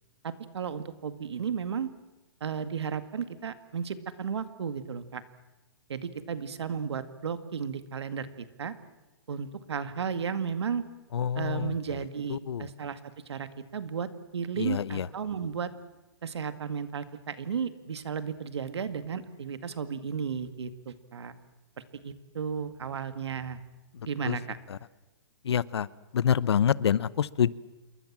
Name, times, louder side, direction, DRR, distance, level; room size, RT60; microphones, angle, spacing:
voice 1, 0.2-1.9 2.4-5.2 5.9-8.8 9.3-10.8 11.4-13.0 13.3-15.7 16.2-21.3 22.0-23.6 24.1-24.6, right 6 dB, 90° right, 11 dB, 2.1 m, -34 dB
voice 2, 11.1-11.8 12.3-12.7 14.6-15.1 23.9-24.4 24.7-24.8 25.4-25.9 26.1-27.5, left 8 dB, 85° left, 20 dB, 0.9 m, -27 dB
28.0 x 23.0 x 7.5 m, 1.1 s
hypercardioid pair, 165°, 14 cm